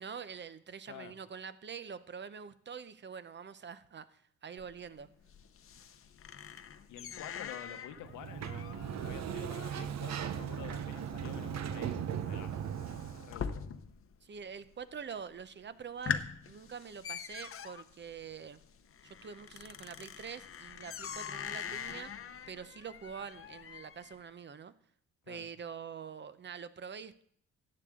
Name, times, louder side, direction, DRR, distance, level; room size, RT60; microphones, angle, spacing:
voice 1, 0.0-5.1 14.2-18.6 19.0-24.7 25.3-27.2, right 6 dB, 35° right, 14 dB, 0.7 m, -45 dB
voice 2, 0.9-1.2 6.9-13.6 25.3-25.5, left 10 dB, 80° left, 10 dB, 1.0 m, -49 dB
sound 1, 4.6-14.1 14.4-15.0 15.4-15.5 15.8-24.1, left 7 dB, 45° left, 0.8 m, -43 dB
Sliding door, 8.0-13.4, right 8 dB, 65° right, 0.9 m, -38 dB
14.0 x 8.6 x 3.7 m, 0.64 s
cardioid pair, 90°, 30 cm